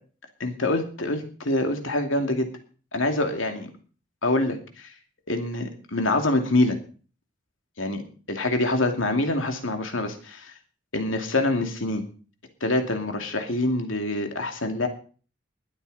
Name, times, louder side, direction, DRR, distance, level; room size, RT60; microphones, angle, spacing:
voice 1, 0.4-2.5 2.9-3.7 4.2-4.9 5.3-6.8 7.8-8.0 8.3-10.5 10.9-12.0 12.6-14.9, left 2 dB, 80° left, 5 dB, 2.6 m, -25 dB
21.5 x 8.7 x 4.2 m, 0.39 s
head